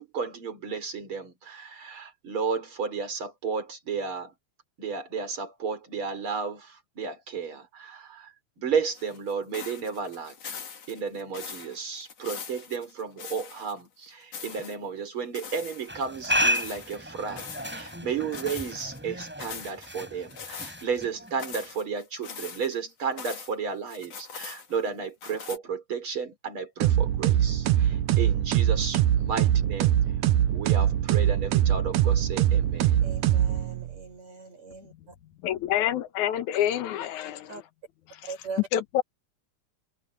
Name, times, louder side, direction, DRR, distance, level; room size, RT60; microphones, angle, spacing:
voice 1, 0.0-4.3 4.8-10.5 10.9-30.0 30.5-33.0, right 5 dB, 45° right, 5.0 m, -33 dB
sound 1, 8.9-13.8 14.1-14.8 15.3-17.0 17.4-18.0 18.3-19.0 19.4-19.9 20.3-20.9 21.3-23.6 23.9-24.9 25.2-25.6, left 6 dB, 55° left, 3.6 m, -42 dB
sound 2, 15.9-21.5, equal, 5° right, 6.4 m, -32 dB
sound 3, 26.8-34.0, right 11 dB, 80° right, 2.3 m, -23 dB
voice 2, 33.0-35.2 37.5-37.6 38.2-38.6, right 4 dB, 65° right, 8.0 m, -41 dB
voice 3, 35.4-37.5 38.7-39.0, left 11 dB, 80° left, 2.6 m, -27 dB
omnidirectional pair, 3.4 m